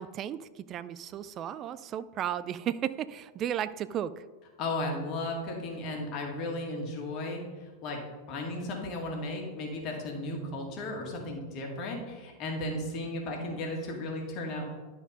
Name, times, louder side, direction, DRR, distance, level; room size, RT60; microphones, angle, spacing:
voice 1, 0.0-4.2, right 10 dB, 30° right, 15 dB, 0.3 m, -34 dB
voice 2, 4.6-7.4 7.8-8.0 8.3-14.6, left 2 dB, 40° left, 1 dB, 1.9 m, -35 dB
11.0 x 4.6 x 5.1 m, 1.3 s
figure-of-eight pair, 90°, 0 cm